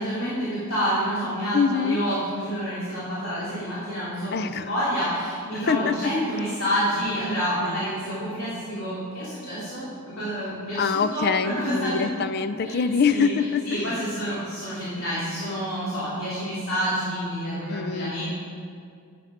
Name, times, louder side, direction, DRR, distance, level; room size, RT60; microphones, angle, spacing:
voice 1, 0.0-12.1 12.6-12.8 13.1-18.2, equal, 75° left, -11 dB, 3.1 m, -28 dB
voice 2, 1.5-2.0 4.3-4.7 5.5-6.1 7.6-7.8 10.7-13.9 17.7-18.1, left 6 dB, 45° left, 11 dB, 0.4 m, -25 dB
12.0 x 8.4 x 5.1 m, 2.3 s
head